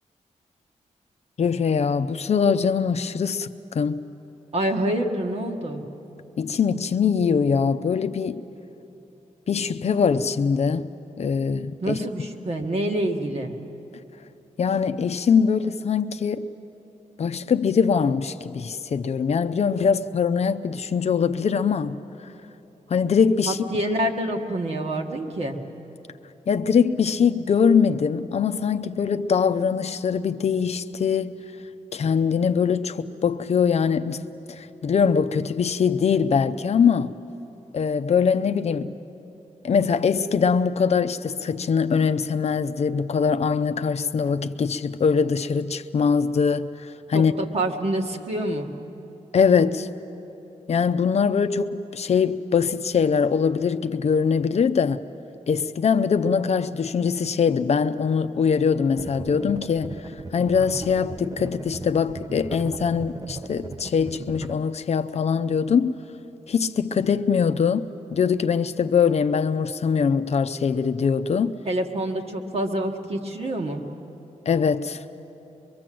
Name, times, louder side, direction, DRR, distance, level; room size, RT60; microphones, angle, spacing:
voice 1, 1.4-3.5 3.7-4.0 6.4-8.4 9.5-10.9 11.2-12.0 14.6-16.5 17.2-22.0 22.9-23.6 26.5-31.4 31.9-37.1 37.7-38.9 39.6-47.3 49.3-49.9 50.7-55.0 55.5-66.0 66.5-67.9 68.1-71.5 74.5-75.0, left 6 dB, 55° left, 0.6 m, -22 dB
voice 2, 4.5-5.8 11.8-13.6 23.4-25.6 47.1-48.7 71.6-73.8, right 1 dB, 50° right, 1.7 m, -27 dB
sound 1, 59.0-64.5, right 3 dB, 25° right, 0.6 m, -37 dB
24.0 x 23.5 x 7.7 m
wide cardioid pair, 170°, 13 cm